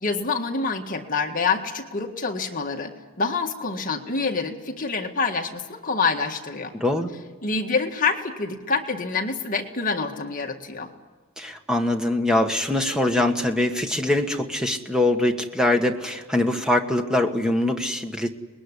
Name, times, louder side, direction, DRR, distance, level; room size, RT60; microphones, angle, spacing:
voice 1, 0.0-6.7 7.4-10.9, left 4 dB, 35° left, 2 dB, 1.9 m, -26 dB
voice 2, 6.7-7.1 11.4-18.3, left 1 dB, 5° right, 4 dB, 1.5 m, -23 dB
24.5 x 20.5 x 10.0 m, 1.3 s
head